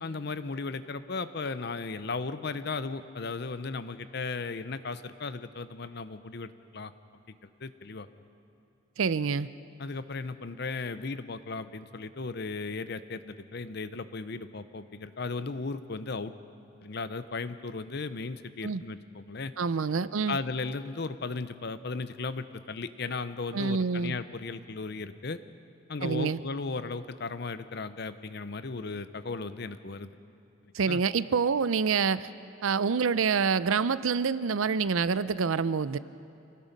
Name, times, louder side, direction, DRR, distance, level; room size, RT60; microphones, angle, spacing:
voice 1, 0.0-6.9 7.3-7.4 7.6-8.1 9.8-16.3 16.8-19.5 20.3-25.4 25.9-30.1 30.9-31.0, left 4 dB, 50° left, 12 dB, 0.7 m, -36 dB
voice 2, 9.0-9.5 18.6-18.8 19.6-20.4 23.5-24.1 26.0-26.4 30.7-32.3 32.6-36.0, right 5 dB, 75° right, 16 dB, 0.5 m, -27 dB
27.0 x 18.5 x 5.3 m, 2.7 s
head